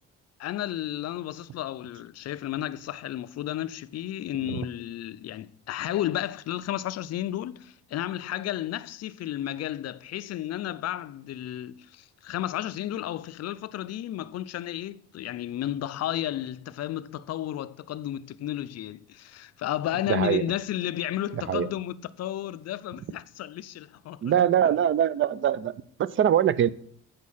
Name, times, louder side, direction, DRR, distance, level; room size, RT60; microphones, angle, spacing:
voice 1, 0.4-24.3 24.6-24.8, left 12 dB, 60° left, 0.5 m, -33 dB
voice 2, 20.1-20.4 21.5-21.7 24.2-25.7 26.0-26.7, right 10 dB, 45° right, 0.4 m, -23 dB
8.2 x 5.2 x 5.6 m
cardioid pair, 90°, 30 cm